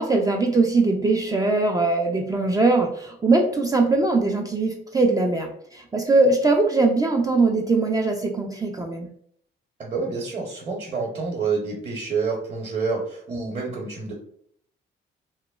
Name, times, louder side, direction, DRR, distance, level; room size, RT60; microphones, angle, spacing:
voice 1, 0.0-9.1, right 3 dB, 20° right, 2 dB, 0.3 m, -21 dB
voice 2, 9.8-14.1, right 4 dB, 35° right, -2 dB, 0.7 m, -28 dB
2.9 x 2.0 x 2.3 m, 0.64 s
cardioid pair, 90°, 20 cm